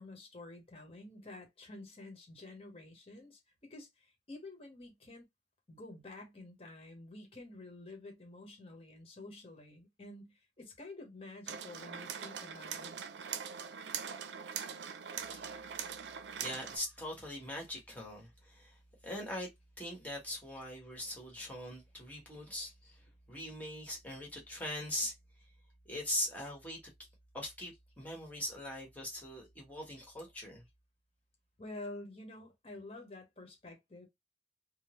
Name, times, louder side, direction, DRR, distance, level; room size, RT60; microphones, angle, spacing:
voice 1, 0.0-5.3 5.7-13.0 31.6-34.1, left 2 dB, 35° left, 1.1 m, -49 dB
sound 1, 11.5-16.8, right 7 dB, 80° right, 0.5 m, -42 dB
voice 2, 15.3-15.9 16.4-18.8 19.0-19.5 19.8-25.1 25.8-26.8 27.3-30.6, left 1 dB, 10° left, 1.3 m, -41 dB
3.5 x 2.0 x 3.0 m
head